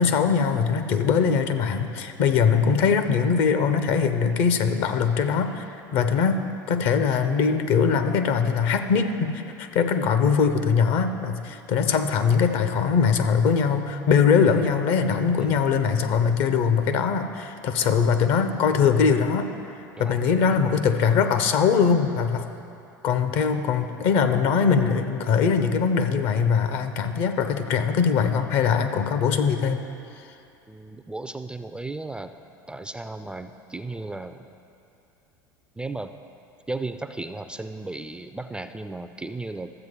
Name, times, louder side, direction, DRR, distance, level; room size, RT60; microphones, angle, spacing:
voice 1, 0.0-19.5 20.0-22.4 23.0-29.8, left 6 dB, 60° left, 9 dB, 0.7 m, -22 dB
voice 2, 30.7-32.3 32.7-34.5 35.8-36.1 36.7-39.7, right 2 dB, 10° right, 9 dB, 0.3 m, -35 dB
13.0 x 7.6 x 3.6 m, 2.6 s
hypercardioid pair, 75°, 11 cm